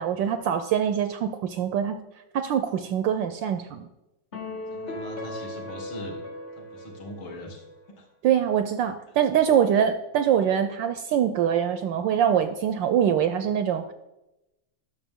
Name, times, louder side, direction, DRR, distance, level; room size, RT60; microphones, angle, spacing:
voice 1, 0.0-2.0 2.3-3.9 8.2-13.9, right 9 dB, 75° right, 10 dB, 1.1 m, -24 dB
sound 1, 4.3-7.8, left 1 dB, 35° left, 0.9 m, -37 dB
voice 2, 4.7-6.3 6.5-8.1, left 1 dB, 70° left, 0 dB, 2.6 m, -41 dB
11.0 x 6.7 x 3.6 m, 0.94 s
omnidirectional pair, 2.3 m